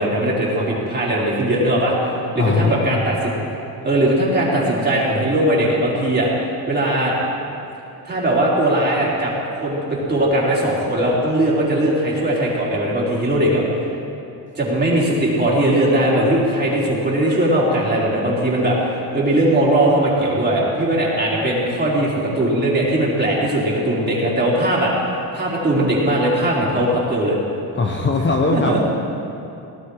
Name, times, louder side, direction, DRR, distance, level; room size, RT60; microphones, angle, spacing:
voice 1, 0.0-1.9 2.3-3.3 3.8-6.3 6.7-7.2 8.0-9.3 9.6-13.6 14.5-24.9 25.3-27.4 28.5-28.8, right 1 dB, 25° right, -5 dB, 4.6 m, -19 dB
voice 2, 2.4-2.7 27.7-28.8, left 3 dB, 25° left, 2 dB, 1.2 m, -19 dB
19.0 x 12.5 x 5.0 m, 2.7 s
cardioid pair, 110°, 41 cm